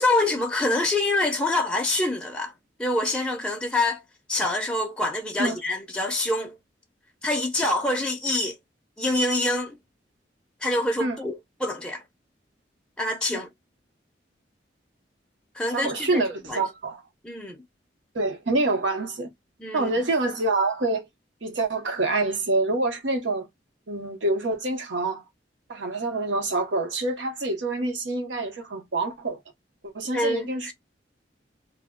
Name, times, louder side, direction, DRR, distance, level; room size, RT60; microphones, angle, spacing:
voice 1, 0.0-2.5 2.8-4.0 4.3-6.5 7.2-8.6 9.0-9.8 10.6-12.0 13.0-13.5 15.5-16.2 16.5-16.6 17.2-17.6 19.6-19.9 30.1-30.7, left 2 dB, 5° left, 0.4 m, -26 dB
voice 2, 15.7-17.0 18.1-19.3 19.7-21.1 21.4-23.5 23.9-25.2 25.7-29.4 29.8-30.7, right 2 dB, 85° right, 0.8 m, -26 dB
2.2 x 2.1 x 3.4 m
head